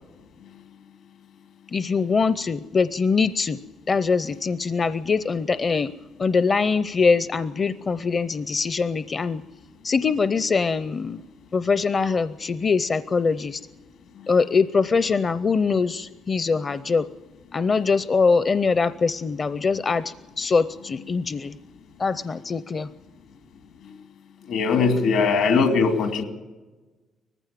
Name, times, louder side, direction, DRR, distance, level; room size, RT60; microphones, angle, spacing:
voice 1, 1.7-3.6 3.9-5.9 6.2-9.4 9.8-11.2 11.5-13.6 14.3-17.0 17.5-21.6 22.0-22.9, left 4 dB, 40° left, 15 dB, 0.6 m, -23 dB
voice 2, 24.5-26.2, left 4 dB, 80° left, 6 dB, 2.8 m, -20 dB
19.5 x 15.0 x 9.0 m, 1.2 s
cardioid pair, 90°, 0 cm